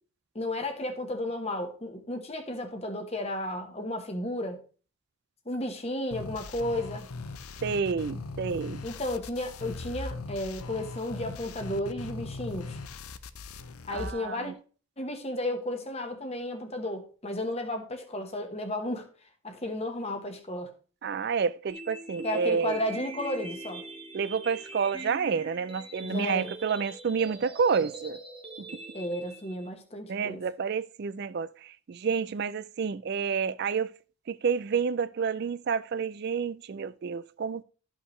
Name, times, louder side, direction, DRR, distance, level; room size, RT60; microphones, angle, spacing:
voice 1, 0.3-4.6 5.4-7.1 8.8-12.8 13.8-14.5 15.0-19.0 19.4-20.7 22.2-23.8 26.0-26.5 28.9-30.4, left 1 dB, 30° left, 1.2 m, -33 dB
sound 1, 6.1-14.1, left 3 dB, 90° left, 0.7 m, -39 dB
voice 2, 7.6-8.8 13.9-14.5 21.0-22.8 24.1-28.2 30.1-33.9 34.3-37.6, right 6 dB, 50° right, 0.4 m, -29 dB
sound 2, 21.7-29.7, right 2 dB, 25° right, 1.2 m, -43 dB
12.5 x 5.6 x 3.2 m
head